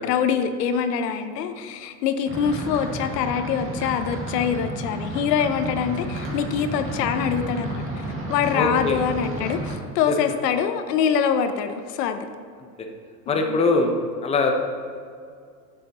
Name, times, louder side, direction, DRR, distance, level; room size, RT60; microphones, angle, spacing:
voice 1, 0.0-12.3 13.5-13.6, left 7 dB, 75° left, 9 dB, 0.8 m, -24 dB
sound 1, 2.3-9.8, right 1 dB, 25° right, 1.8 m, -32 dB
voice 2, 8.5-9.0 12.8-12.9 13.3-14.0 14.2-14.5, left 3 dB, 15° left, 2 dB, 0.7 m, -22 dB
8.9 x 6.9 x 3.0 m, 2.2 s
supercardioid pair, 115°, 48 cm